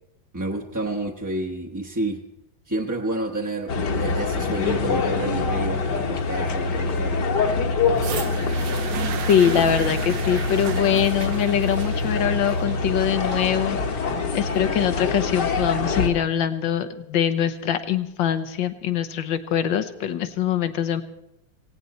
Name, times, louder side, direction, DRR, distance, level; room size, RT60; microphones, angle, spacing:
voice 1, 0.3-2.2 2.7-7.3, right 2 dB, 15° right, 0 dB, 0.7 m, -30 dB
sound 1, 3.7-16.1, left 4 dB, 65° left, 1.9 m, -25 dB
sound 2, 8.0-16.0 16.8-16.9, right 10 dB, 70° right, 1.4 m, -36 dB
voice 2, 9.3-14.1 14.3-21.0, left 9 dB, 80° left, 10 dB, 1.7 m, -23 dB
18.5 x 17.0 x 4.2 m, 0.87 s
omnidirectional pair, 2.1 m